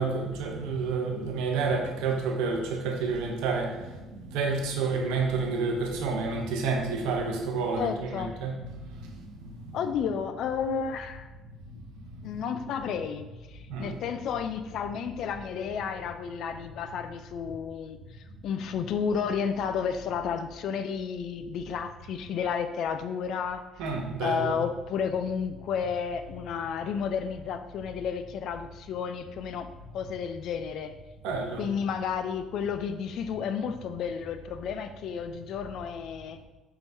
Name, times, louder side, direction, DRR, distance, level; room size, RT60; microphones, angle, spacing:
voice 1, 0.0-3.7 4.3-8.6 13.7-13.9 23.8-24.6 31.2-31.7, right 4 dB, 85° right, 2 dB, 0.7 m, -29 dB
voice 2, 7.8-8.3 9.7-11.3 12.2-18.0 18.4-23.7 24.2-29.7 29.9-30.9 31.6-36.4, left 7 dB, 65° left, 9 dB, 0.3 m, -32 dB
4.5 x 3.4 x 2.7 m, 1.1 s
supercardioid pair, 85°, 0 cm